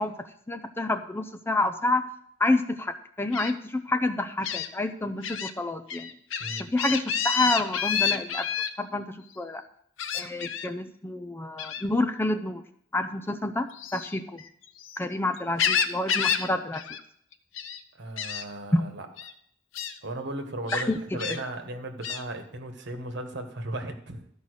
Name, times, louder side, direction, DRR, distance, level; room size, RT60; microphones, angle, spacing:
voice 1, 0.0-2.1 2.4-6.1 6.6-8.5 8.8-9.6 10.1-12.6 12.9-14.4 15.0-16.8 18.7-18.8 20.7-21.0, left 2 dB, 10° left, 9 dB, 0.5 m, -28 dB
Gull seagull, 3.3-3.5 4.4-4.7 5.2-5.5 5.9-8.7 10.0-10.7 11.6-11.9 13.7-15.0 15.3-16.5 16.7-17.0 17.3-17.8 18.2-18.4 19.2-19.3 19.7-19.9 20.7-21.4 22.0-22.2, left 7 dB, 85° left, 0.8 m, -29 dB
voice 2, 6.4-6.7 17.9-19.1 20.0-24.2, right 1 dB, 60° right, 5 dB, 1.4 m, -36 dB
13.0 x 5.4 x 6.5 m, 0.68 s
head